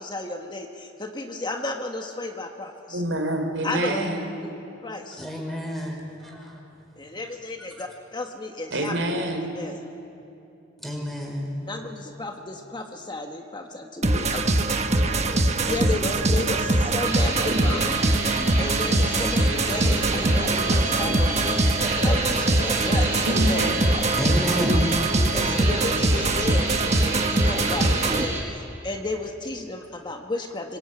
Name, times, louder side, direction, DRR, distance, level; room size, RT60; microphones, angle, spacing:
voice 1, 0.0-3.0 3.6-4.0 4.4-4.5 4.8-5.2 7.0-8.9 9.5-9.8 11.7-14.5 14.9-21.6 21.9-23.7 25.3-26.8 27.1-30.8, left 2 dB, 25° left, 3 dB, 1.4 m, -33 dB
voice 2, 2.9-4.2 8.7-9.5 23.2-23.9, right 1 dB, 90° right, 3 dB, 3.9 m, -26 dB
voice 3, 5.2-6.6 10.8-11.6 15.2-15.3 24.1-25.3, equal, ahead, 0 dB, 5.3 m, -30 dB
sound 1, 14.0-28.3, right 2 dB, 35° right, 1.3 m, -22 dB
sound 2, 17.0-28.4, right 2 dB, 20° right, 7.2 m, -31 dB
25.0 x 23.5 x 8.9 m, 2.9 s
head